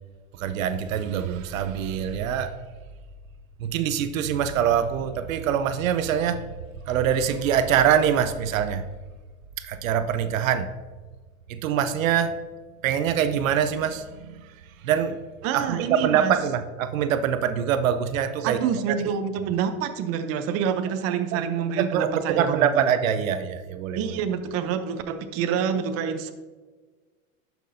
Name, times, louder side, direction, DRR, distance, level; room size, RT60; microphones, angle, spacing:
voice 1, 0.3-2.6 3.6-6.4 6.9-8.8 9.6-10.7 11.5-12.4 12.8-14.4 14.8-15.2 15.5-18.6 18.9-19.0 21.3-21.4 21.8-24.0, right 8 dB, 75° right, 10 dB, 0.8 m, -24 dB
voice 2, 15.4-16.3 18.4-22.9 23.9-26.3, right 7 dB, 35° right, 8 dB, 0.7 m, -27 dB
11.5 x 6.1 x 2.7 m, 1.4 s
hypercardioid pair, 125°, 41 cm